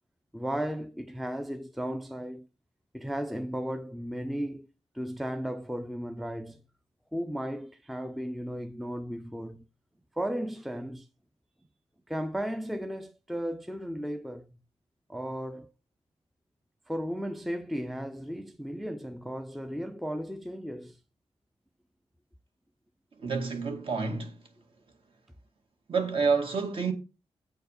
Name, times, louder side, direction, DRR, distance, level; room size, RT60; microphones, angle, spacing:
voice 1, 0.3-2.5 2.9-4.7 4.9-6.6 7.1-9.7 10.1-11.1 12.1-14.5 15.1-15.7 16.9-21.0, equal, ahead, 0.5 m, -35 dB
voice 2, 23.2-24.5 25.9-26.9, right 5 dB, 55° right, 2.0 m, -28 dB
8.5 x 4.6 x 6.4 m
wide cardioid pair, 160°, 11 cm